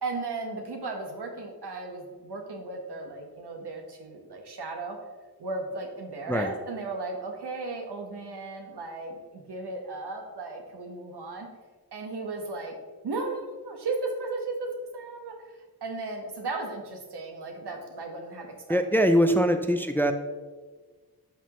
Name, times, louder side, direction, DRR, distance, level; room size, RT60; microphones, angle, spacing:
voice 1, 0.0-5.0 5.4-11.5 11.9-12.7 13.0-15.4 15.8-18.5 18.9-19.1, right 3 dB, 90° right, 2 dB, 1.5 m, -35 dB
voice 2, 18.7-20.1, equal, 5° left, 7 dB, 0.4 m, -22 dB
11.0 x 6.1 x 3.1 m, 1.4 s
wide cardioid pair, 135°, 39 cm